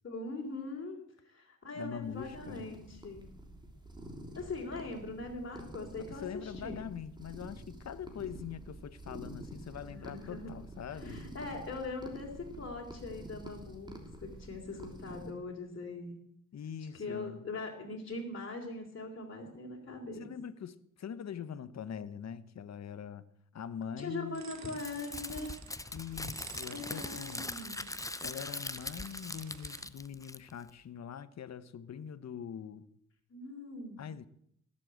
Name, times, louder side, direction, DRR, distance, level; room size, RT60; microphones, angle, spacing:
voice 1, 0.0-1.0 1.3-3.2 4.4-6.9 9.8-10.5 10.9-16.2 16.9-20.3 24.0-25.5 26.7-27.9 33.3-34.1, left 3 dB, 40° left, 3.6 m, -41 dB
voice 2, 1.7-2.7 6.0-11.3 16.5-17.5 20.1-23.2 23.5-24.4 25.9-27.5 28.2-32.9 34.0-34.3, left 8 dB, 55° left, 1.1 m, -43 dB
sound 1, 2.0-15.3, right 1 dB, 15° right, 3.2 m, -48 dB
sound 2, 24.3-29.9, right 8 dB, 60° right, 1.3 m, -52 dB
Crumpling crinkling, 24.8-30.7, left 2 dB, 10° left, 0.6 m, -41 dB
17.5 x 7.7 x 7.9 m
cardioid pair, 70°, 31 cm